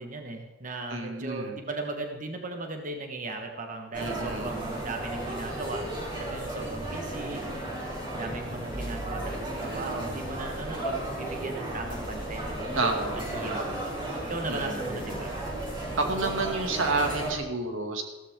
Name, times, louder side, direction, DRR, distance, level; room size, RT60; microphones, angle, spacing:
voice 1, 0.0-5.9 6.2-7.4 8.1-14.0 14.3-15.4, right 2 dB, 40° right, 4 dB, 1.5 m, -37 dB
voice 2, 0.9-1.6 4.0-4.5 12.7-13.9 14.5-15.0 16.0-18.0, right 3 dB, 90° right, 3 dB, 2.5 m, -30 dB
sound 1, 3.9-17.3, right 1 dB, 25° right, 5.7 m, -34 dB
15.5 x 14.5 x 3.8 m, 1.1 s
head